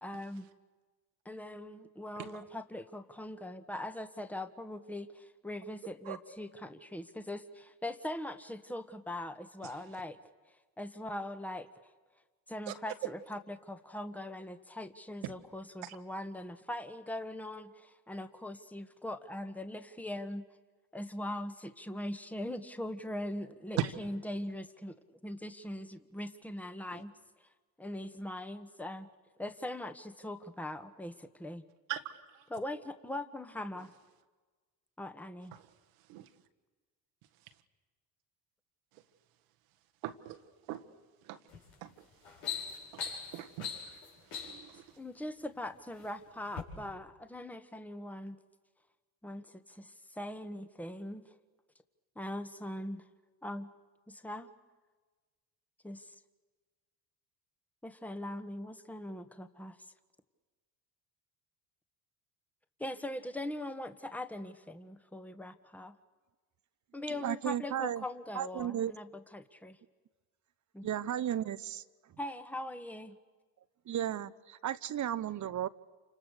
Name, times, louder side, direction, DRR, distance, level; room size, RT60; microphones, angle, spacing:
voice 1, 0.0-0.5 1.2-10.2 10.5-11.7 12.5-20.4 20.9-25.0 25.2-27.1 27.4-27.5 27.8-29.1 29.4-31.6 32.5-33.9 35.0-35.5 45.0-48.4 49.2-51.3 52.1-53.0 53.4-53.7 54.1-54.5 55.8-56.1 57.8-59.8 62.8-65.9 66.9-69.8 70.7-70.9 72.2-73.2, left 1 dB, 5° left, 1.6 m, -41 dB
voice 2, 40.0-40.4 40.7-40.8 41.3-41.4 41.8-41.9 43.3-43.7 44.4-44.8, right 12 dB, 75° right, 1.7 m, -37 dB
sound 1, 41.5-41.7 42.1-44.7 45.5-46.1 46.5-46.6, left 6 dB, 80° left, 5.7 m, -40 dB
voice 3, 67.1-68.0 68.3-68.9 70.8-71.8 73.9-75.7, right 10 dB, 40° right, 1.0 m, -34 dB
29.0 x 26.0 x 6.7 m
hypercardioid pair, 70°, 46 cm